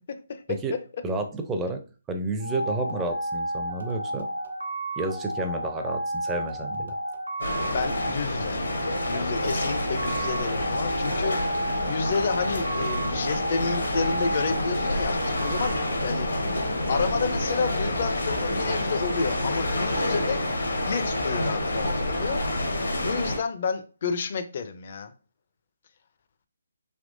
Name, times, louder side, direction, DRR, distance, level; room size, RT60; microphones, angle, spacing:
voice 1, 0.1-0.4 7.7-8.6 9.1-15.7 16.0-16.4 16.9-20.4 20.9-22.7 23.0-25.1, left 5 dB, 50° left, 0.5 m, -30 dB
voice 2, 1.0-1.8 2.1-4.3 5.0-7.0, right 2 dB, 15° right, 0.4 m, -30 dB
sound 1, 2.4-16.9, right 1 dB, 90° right, 0.9 m, -33 dB
sound 2, 7.4-23.4, left 1 dB, 80° left, 1.0 m, -28 dB
3.4 x 2.9 x 2.6 m
figure-of-eight pair, 150°, 0 cm